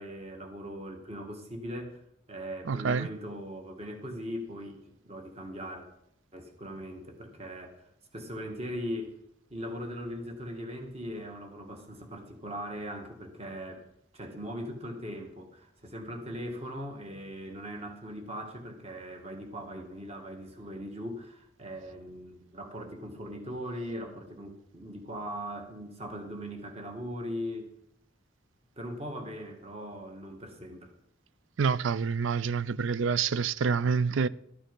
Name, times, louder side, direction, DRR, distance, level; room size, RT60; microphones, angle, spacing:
voice 1, 0.0-2.0 2.3-5.8 6.3-7.8 8.1-9.1 9.5-13.8 14.1-27.7 28.8-30.9, equal, 35° right, 1.7 m, -40 dB
voice 2, 2.7-3.1 31.6-34.3, right 5 dB, 90° right, 0.4 m, -27 dB
12.5 x 9.0 x 5.3 m
head